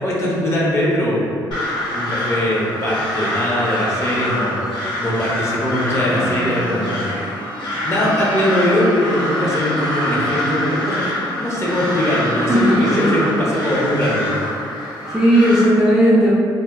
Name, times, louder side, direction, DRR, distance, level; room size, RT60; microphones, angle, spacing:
voice 1, 0.0-1.2 1.9-4.6 5.0-7.0 7.8-14.3, equal, 35° left, -6 dB, 0.7 m, -21 dB
Crow, 1.5-15.7, left 1 dB, 70° left, 0.7 m, -25 dB
sound 1, 5.8-13.7, right 2 dB, 55° right, 0.6 m, -32 dB
voice 2, 12.5-13.3 14.8-16.3, equal, 5° right, -8 dB, 0.4 m, -16 dB
2.2 x 2.0 x 3.5 m, 2.5 s
cardioid pair, 105°, 8 cm